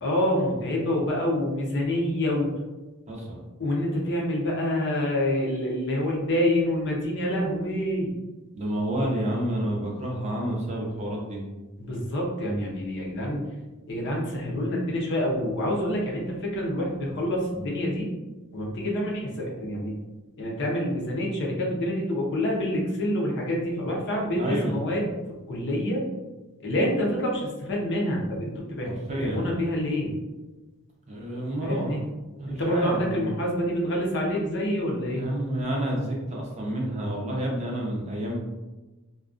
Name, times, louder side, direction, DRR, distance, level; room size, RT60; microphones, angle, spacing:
voice 1, 0.0-2.5 3.6-8.1 11.8-13.4 13.9-18.1 18.5-19.9 20.4-25.1 25.5-26.0 26.6-30.1 31.6-32.0 32.5-35.3, left 1 dB, 55° left, -1 dB, 0.6 m, -27 dB
voice 2, 3.1-3.4 8.5-11.4 24.4-24.8 28.8-29.5 31.1-32.0 32.4-33.3 35.0-38.4, right 1 dB, 30° right, -2 dB, 0.5 m, -29 dB
2.4 x 2.2 x 2.4 m, 1.2 s
head